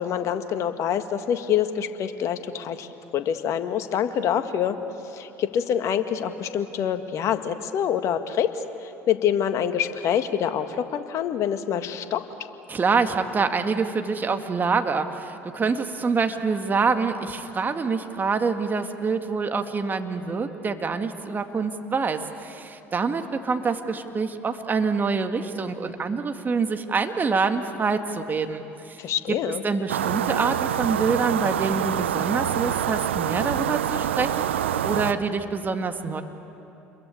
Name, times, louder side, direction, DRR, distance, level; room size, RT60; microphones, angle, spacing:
voice 1, 0.0-2.9 3.1-4.8 5.1-12.2 29.0-29.6, left 9 dB, 55° left, 8 dB, 1.8 m, -26 dB
voice 2, 12.7-29.0 29.6-34.4 34.8-36.2, right 4 dB, 30° right, 6 dB, 2.0 m, -26 dB
sound 1, 29.9-35.1, right 10 dB, 85° right, 0.7 m, -26 dB
29.0 x 22.5 x 8.6 m, 3.0 s
hypercardioid pair, 65°, 6 cm